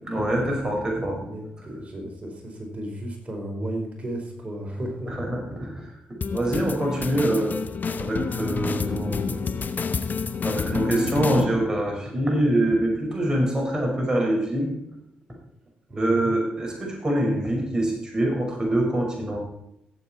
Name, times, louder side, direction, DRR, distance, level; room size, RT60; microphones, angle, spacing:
voice 1, 0.0-1.3 1.6-1.7 5.1-5.9 6.3-7.6 8.0-9.4 10.4-14.7 16.0-19.4, right 1 dB, 20° right, 0 dB, 5.5 m, -25 dB
voice 2, 1.2-5.1 15.9-16.3, right 1 dB, 35° right, 1 dB, 4.8 m, -34 dB
sound 1, 6.2-11.5, left 5 dB, 50° left, 1.0 m, -29 dB
16.5 x 7.8 x 4.4 m, 0.82 s
hypercardioid pair, 40°, 4 cm